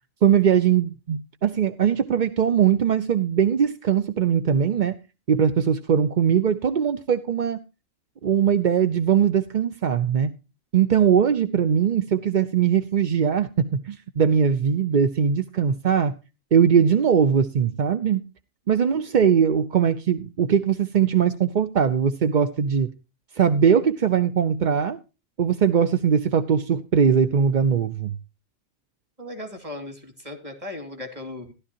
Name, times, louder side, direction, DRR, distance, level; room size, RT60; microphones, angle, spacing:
voice 1, 0.2-5.0 5.3-7.6 8.2-10.3 10.7-16.2 16.5-18.2 18.7-22.9 23.4-25.0 25.4-28.1, right 7 dB, 45° right, 0.7 m, -20 dB
voice 2, 29.2-31.5, left 2 dB, 25° right, 2.6 m, -37 dB
15.5 x 11.5 x 2.8 m
omnidirectional pair, 1.4 m